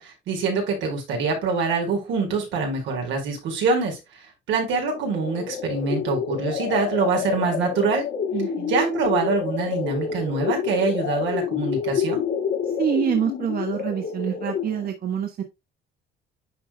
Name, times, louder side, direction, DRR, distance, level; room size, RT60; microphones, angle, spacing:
voice 1, 0.0-4.0 4.5-8.0 8.7-12.2, right 4 dB, 85° right, 4.5 m, -24 dB
sound 1, 4.9-14.9, left 7 dB, 65° left, 1.7 m, -28 dB
voice 2, 8.3-8.7 12.6-15.4, right 9 dB, 50° right, 1.3 m, -26 dB
10.5 x 5.5 x 2.2 m
cardioid pair, 130°, 19 cm